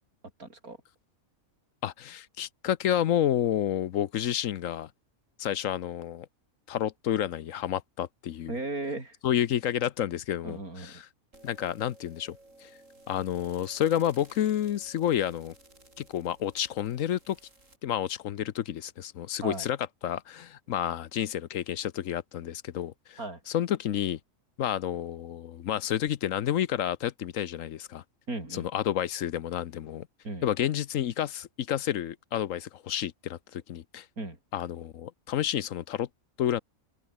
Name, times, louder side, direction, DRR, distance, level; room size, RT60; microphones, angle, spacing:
voice 1, 0.4-0.8 8.5-9.1 10.4-11.0 19.4-19.7 23.2-23.4 28.3-28.7 30.2-30.5 34.2-34.4, right 2 dB, 85° right, 6.0 m, -36 dB
voice 2, 1.8-4.9 5.4-6.3 6.7-8.6 9.2-10.6 11.0-11.1 11.4-12.4 12.6-12.7 13.1-15.5 16.0-17.4 17.8-24.2 24.6-28.0 28.5-30.1 30.4-34.1 34.5-36.1 36.4-36.6, left 10 dB, 70° left, 1.1 m, -30 dB
sound 1, 11.3-17.8, right 2 dB, 60° right, 6.8 m, -56 dB
open air
omnidirectional pair, 1.5 m